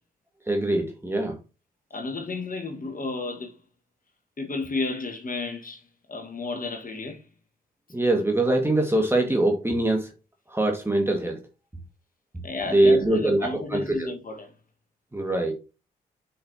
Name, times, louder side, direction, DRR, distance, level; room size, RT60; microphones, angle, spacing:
voice 1, 0.5-1.4 7.9-10.1 10.5-11.4 12.7-14.1 15.1-15.5, right 1 dB, 10° right, 2.0 m, -23 dB
voice 2, 1.9-3.5 4.4-5.8 6.1-7.2 12.4-14.5, left 3 dB, 45° left, 1.8 m, -32 dB
7.6 x 5.6 x 2.9 m
hypercardioid pair, 40°, 20 cm